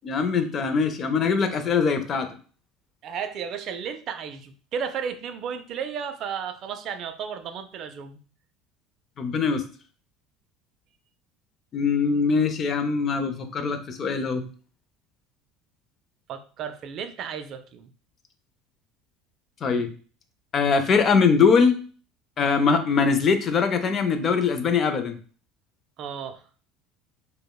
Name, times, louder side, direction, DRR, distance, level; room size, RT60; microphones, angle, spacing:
voice 1, 0.0-2.3 9.2-9.6 11.7-14.5 19.6-19.9 20.5-21.7 22.4-25.2, left 5 dB, 30° left, 8 dB, 0.4 m, -22 dB
voice 2, 3.0-8.2 16.3-17.9 26.0-26.4, right 7 dB, 45° right, 9 dB, 0.4 m, -33 dB
5.1 x 2.0 x 2.2 m, 0.41 s
cardioid pair, 145°, 0 cm